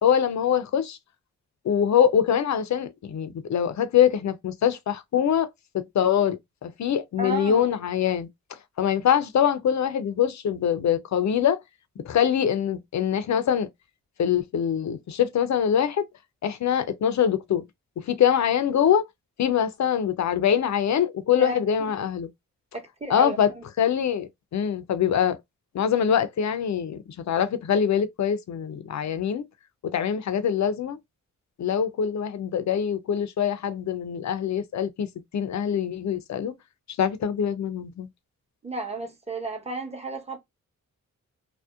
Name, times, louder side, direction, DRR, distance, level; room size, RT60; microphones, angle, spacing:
voice 1, 0.0-1.0 1.6-5.5 5.7-8.3 8.8-11.6 12.0-13.7 14.2-16.1 16.4-17.6 18.1-19.0 19.4-22.3 23.1-23.5 23.8-25.4 25.7-27.0 27.3-29.4 29.9-31.0 31.6-35.1 35.3-36.5 37.0-38.1, left 8 dB, 55° left, 0.5 m, -24 dB
voice 2, 7.2-7.7 21.4-21.9 22.7-23.6 38.6-40.4, right 2 dB, 20° right, 1.0 m, -33 dB
2.7 x 2.0 x 2.3 m
supercardioid pair, 40°, 35 cm